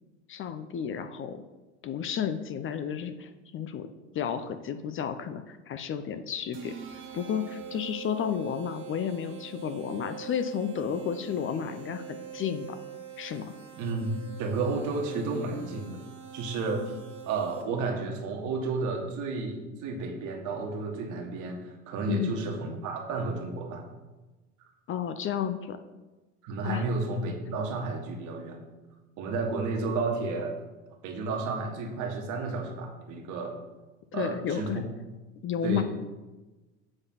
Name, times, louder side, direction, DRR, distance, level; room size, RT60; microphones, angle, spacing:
voice 1, 0.3-1.4 1.8-3.9 4.1-6.7 7.1-12.8 13.2-13.5 22.1-22.3 24.9-25.8 26.6-26.8 34.1-34.8 35.4-35.8, left 8 dB, 35° left, 10 dB, 0.6 m, -32 dB
sound 1, 6.5-17.9, right 9 dB, 35° right, 1.4 m, -43 dB
voice 2, 13.8-16.0 16.3-16.9 17.3-23.8 26.4-28.6 29.2-30.5 31.0-33.5 34.1-34.8 35.6-35.8, right 3 dB, 55° right, 2 dB, 1.7 m, -32 dB
7.9 x 4.0 x 5.7 m, 1.1 s
hypercardioid pair, 80°, 35 cm